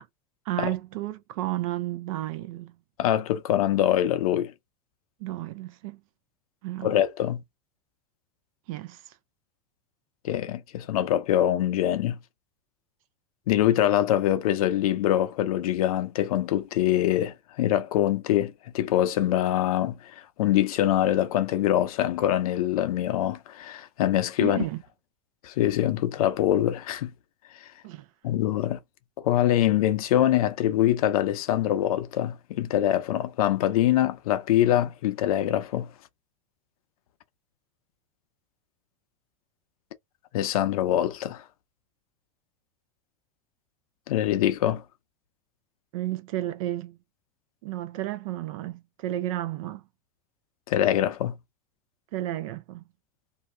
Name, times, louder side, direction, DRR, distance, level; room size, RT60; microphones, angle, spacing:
voice 1, 0.5-2.7 5.2-6.0 6.6-7.0 8.7-9.2 24.4-24.8 27.8-28.1 45.9-47.0 47.6-49.8 52.1-52.8, right 15 dB, 70° right, 0.5 m, -32 dB
voice 2, 3.0-4.5 6.8-7.4 10.2-12.2 13.5-24.6 25.4-27.1 28.2-28.8 29.2-35.9 40.3-41.4 44.1-44.8 50.7-51.4, left 12 dB, 85° left, 0.7 m, -24 dB
2.8 x 2.4 x 3.2 m
supercardioid pair, 140°, 18 cm